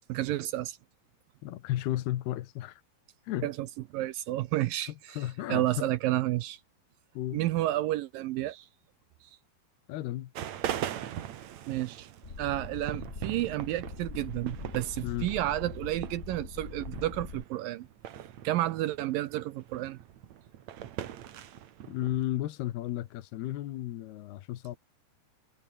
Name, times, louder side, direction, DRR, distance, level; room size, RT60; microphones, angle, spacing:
voice 1, 0.1-0.8 3.4-3.7 3.9-5.2 5.5-6.6 7.3-8.7 11.7-12.1 12.4-17.9 18.4-20.0, right 15 dB, 75° right, 2.2 m, -31 dB
voice 2, 1.4-2.8 3.2-3.5 5.1-5.9 7.1-7.4 9.9-10.3 15.0-15.3 21.9-24.8, left 14 dB, 80° left, 3.2 m, -33 dB
sound 1, 10.3-22.2, right 11 dB, 60° right, 2.2 m, -41 dB
sound 2, 12.2-17.4, left 5 dB, 40° left, 1.1 m, -42 dB
omnidirectional pair, 4.6 m